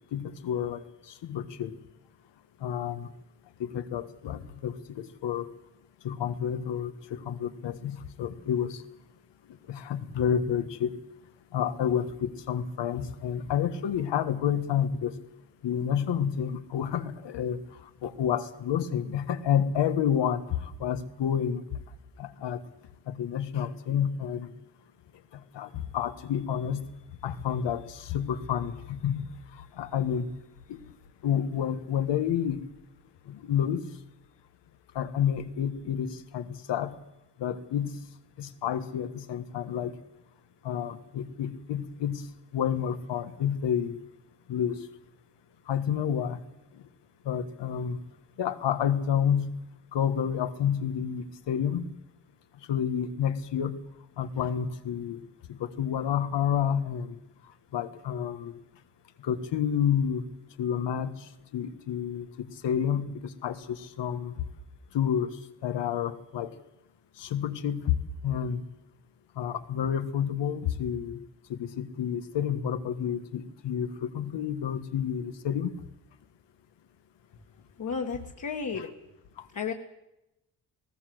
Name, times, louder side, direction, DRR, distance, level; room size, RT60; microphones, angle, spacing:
voice 1, 0.1-0.8 1.2-1.7 2.6-3.1 3.6-5.5 6.0-8.8 9.7-11.0 11.5-15.2 15.6-17.6 18.0-21.6 22.2-22.6 23.1-24.5 25.3-26.8 27.2-29.3 29.6-30.3 30.7-30.8 31.2-32.6 33.3-33.9 34.9-37.0 37.4-37.9 38.4-40.0 40.6-42.2 42.5-44.0 44.5-44.9 45.7-46.4 47.2-48.0 48.4-49.5 49.9-51.9 52.7-53.8 54.2-55.2 55.5-57.2 57.7-58.5 59.2-60.2 60.6-61.3 61.5-64.4 64.9-65.3 65.6-66.5 67.2-68.0 68.2-68.6 69.4-71.2 71.5-75.7 78.7-78.8 79.4-79.5, left 8 dB, 85° left, 11 dB, 1.6 m, -29 dB
voice 2, 77.8-78.9 79.5-79.7, left 5 dB, 45° left, 2 dB, 1.8 m, -32 dB
19.5 x 17.5 x 7.9 m, 0.89 s
cardioid pair, 140°, 41 cm